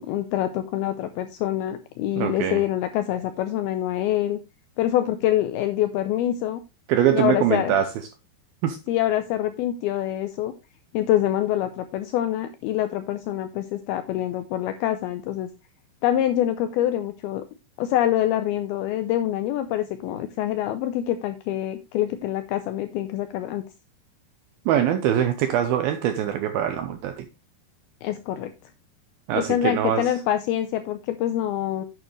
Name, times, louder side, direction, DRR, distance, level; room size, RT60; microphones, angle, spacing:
voice 1, 0.0-4.4 4.8-6.6 7.1-7.8 8.9-10.5 10.9-15.5 16.0-17.4 17.8-23.6 28.0-28.5 29.4-31.8, left 12 dB, 80° left, 2.2 m, -25 dB
voice 2, 2.2-2.6 6.9-7.9 8.6-8.8 24.7-27.3 29.3-30.1, right 10 dB, 85° right, 2.2 m, -23 dB
9.0 x 8.7 x 3.1 m
omnidirectional pair, 5.1 m